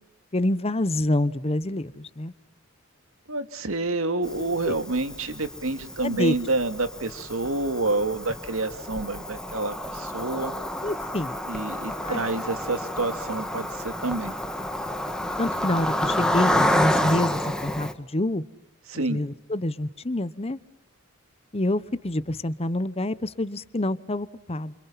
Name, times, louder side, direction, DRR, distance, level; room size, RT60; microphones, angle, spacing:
voice 1, 0.3-2.3 4.7-4.8 6.0-6.4 10.8-11.4 12.0-12.2 15.4-18.4 19.1-20.6 21.5-24.7, left 1 dB, 30° left, 15 dB, 1.0 m, -27 dB
voice 2, 3.3-10.5 11.5-14.3 18.9-19.2, right 2 dB, 75° right, 10 dB, 2.3 m, -28 dB
Cricket, 4.2-17.9, left 1 dB, 5° left, 2.0 m, -29 dB
29.5 x 28.0 x 5.8 m, 0.74 s
head